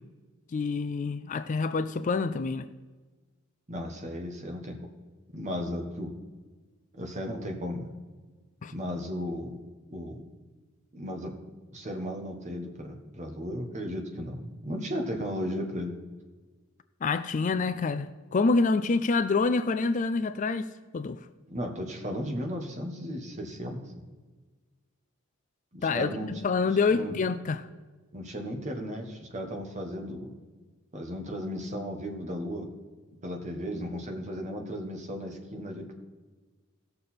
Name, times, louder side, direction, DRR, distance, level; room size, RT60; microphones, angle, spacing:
voice 1, 0.5-2.7 8.6-8.7 17.0-20.7 20.9-21.2 25.8-27.7, left 4 dB, 35° left, 0.3 m, -27 dB
voice 2, 3.7-4.9 5.3-6.1 6.9-7.9 8.7-9.6 9.9-10.2 10.9-11.4 11.7-16.0 21.5-23.8 25.7-26.3 26.9-27.1 28.1-30.4 30.9-32.7 33.2-35.9, equal, 35° right, 1.4 m, -35 dB
17.0 x 6.6 x 4.4 m
head